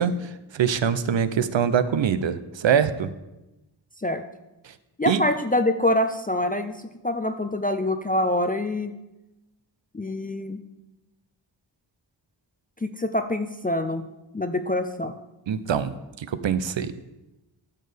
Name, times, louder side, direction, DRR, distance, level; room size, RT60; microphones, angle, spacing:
voice 1, 0.0-3.1 5.1-5.2 15.5-16.9, right 7 dB, 70° right, 13 dB, 0.6 m, -24 dB
voice 2, 5.0-6.7 7.0-8.9 9.9-10.6 12.8-14.1 14.3-15.1, left 1 dB, 20° left, 7 dB, 0.5 m, -25 dB
13.0 x 6.6 x 3.4 m, 0.99 s
wide cardioid pair, 75°, 46 cm